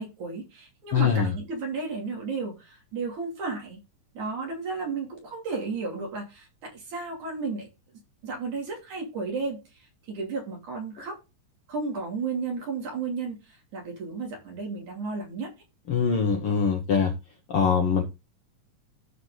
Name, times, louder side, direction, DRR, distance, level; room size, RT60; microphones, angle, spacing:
voice 1, 0.0-3.8 4.1-7.7 8.2-11.2 11.7-15.5, right 4 dB, 65° right, 4.2 m, -33 dB
voice 2, 0.9-1.3 15.9-17.1 17.5-18.0, left 6 dB, 60° left, 1.5 m, -23 dB
12.5 x 4.7 x 3.9 m
omnidirectional pair, 3.8 m